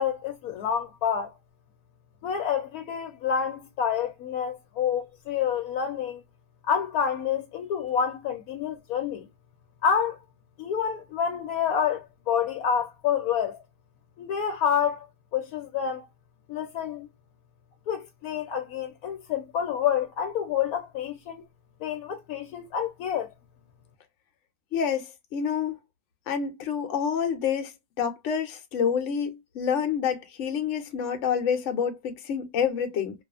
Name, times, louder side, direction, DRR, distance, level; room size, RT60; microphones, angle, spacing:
voice 1, 0.0-1.3 2.2-6.2 6.7-9.3 9.8-10.2 10.6-13.6 14.2-15.1 15.3-16.0 16.5-17.1 17.9-21.4 21.8-23.3, left 7 dB, 85° left, 1.1 m, -28 dB
voice 2, 24.7-25.1 25.3-25.8 26.3-33.1, left 7 dB, 60° left, 1.0 m, -28 dB
2.6 x 2.4 x 2.4 m
omnidirectional pair, 1.5 m